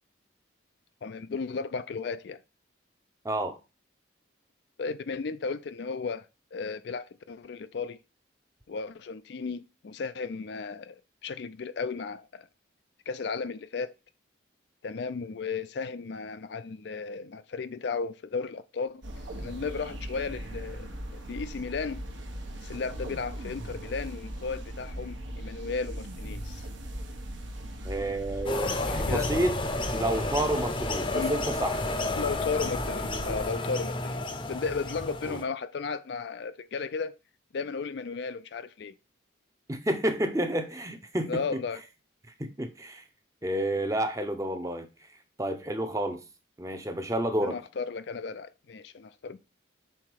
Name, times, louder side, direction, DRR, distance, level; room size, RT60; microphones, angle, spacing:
voice 1, 1.0-2.4 4.8-8.0 8.7-12.5 13.1-13.9 14.8-19.0 19.4-22.0 22.6-26.7 28.8-29.3 31.1-31.3 32.2-34.2 34.5-37.2 37.5-38.9 41.3-41.8 47.4-49.4, left 4 dB, 60° left, 0.4 m, -34 dB
voice 2, 3.2-3.6 27.8-29.6 29.9-31.8 35.2-35.4 39.7-41.4 42.4-43.0 43.4-44.9 45.4-46.2 46.6-47.6, right 1 dB, 15° right, 0.7 m, -30 dB
sound 1, 19.0-33.5, right 1 dB, 70° right, 1.0 m, -39 dB
sound 2, 28.5-35.4, left 2 dB, 25° left, 0.7 m, -31 dB
5.7 x 3.8 x 4.6 m
head